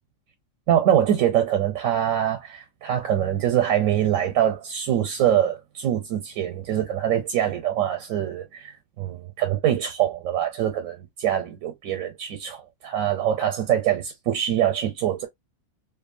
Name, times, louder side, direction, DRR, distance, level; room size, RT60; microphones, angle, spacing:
voice 1, 0.7-15.3, right 10 dB, 80° right, 1.0 m, -24 dB
2.7 x 2.4 x 2.5 m
omnidirectional pair, 1.4 m